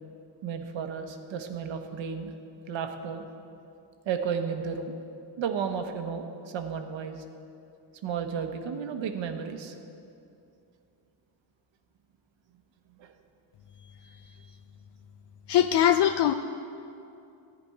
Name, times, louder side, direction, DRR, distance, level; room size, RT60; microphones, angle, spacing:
voice 1, 0.4-2.3 2.7-3.2 4.1-5.0 5.4-7.2 8.0-9.7 13.0-13.1, right 6 dB, 90° right, 6 dB, 1.1 m, -33 dB
voice 2, 15.5-16.3, left 11 dB, 65° left, 9 dB, 0.5 m, -21 dB
14.0 x 5.2 x 9.2 m, 2.6 s
wide cardioid pair, 155°, 44 cm